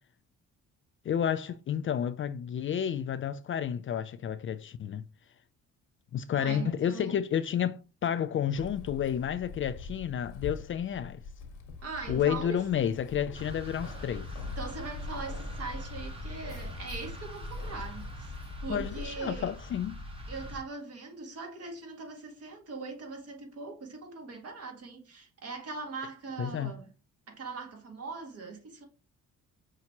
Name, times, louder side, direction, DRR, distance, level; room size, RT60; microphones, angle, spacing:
voice 1, 1.0-5.1 6.1-11.2 12.1-14.3 18.7-20.0 26.4-26.8, left 9 dB, 45° left, 0.4 m, -31 dB
voice 2, 6.3-7.2 11.8-12.6 14.6-18.3 18.6-19.5 20.3-26.9 27.3-28.9, right 4 dB, 55° right, 1.6 m, -41 dB
Keys jangling, 8.6-19.1, left 4 dB, 85° left, 1.2 m, -43 dB
sound 1, 13.3-20.6, equal, 20° right, 1.3 m, -42 dB
5.8 x 2.8 x 2.9 m
cardioid pair, 90°, 30 cm